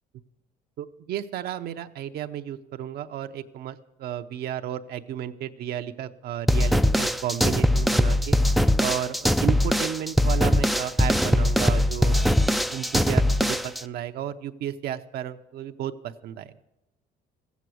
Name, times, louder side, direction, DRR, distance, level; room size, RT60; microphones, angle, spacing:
voice 1, 0.8-8.4 8.8-12.2 12.7-16.5, right 11 dB, 70° right, 8 dB, 0.7 m, -33 dB
sound 1, 6.5-13.8, left 1 dB, ahead, 0.3 m, -21 dB
14.5 x 8.2 x 6.2 m, 0.98 s
cardioid pair, 110°, 17 cm